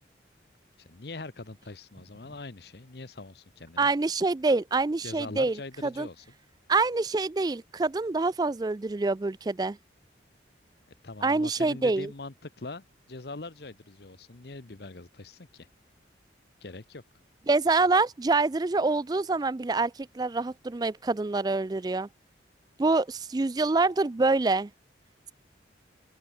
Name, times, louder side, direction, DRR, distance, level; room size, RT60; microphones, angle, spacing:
voice 1, 0.8-3.9 5.0-6.3 11.0-15.7 16.6-17.0, left 3 dB, 55° left, 1.0 m, -42 dB
voice 2, 3.8-5.6 5.8-6.1 6.7-9.8 11.2-12.1 17.5-22.1 22.8-24.7, right 3 dB, 20° right, 0.3 m, -26 dB
open air
head